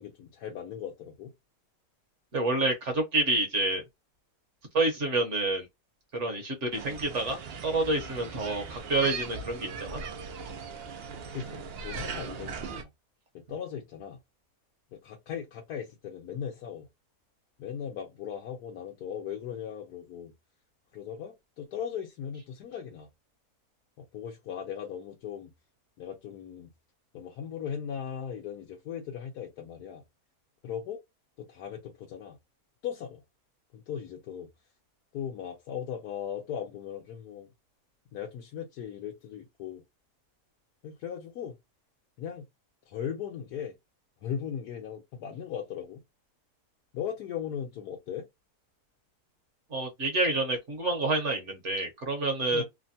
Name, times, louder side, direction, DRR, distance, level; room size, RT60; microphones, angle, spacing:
voice 1, 0.0-1.3 11.3-12.9 13.3-14.2 14.9-16.9 17.6-20.3 20.9-23.1 24.0-25.5 26.0-26.7 27.1-30.0 30.6-31.0 31.4-32.4 32.8-33.2 33.7-34.5 35.1-37.5 38.1-39.8 40.8-41.6 42.2-42.5 42.9-43.7 44.2-46.0 46.9-48.3 52.5-52.6, left 8 dB, 75° left, 1.2 m, -38 dB
voice 2, 2.3-3.8 4.7-5.7 6.1-10.0 49.7-52.6, right 2 dB, 50° right, 1.2 m, -28 dB
sound 1, 6.7-12.8, right 5 dB, 70° right, 0.5 m, -39 dB
3.2 x 2.1 x 2.6 m
omnidirectional pair, 1.7 m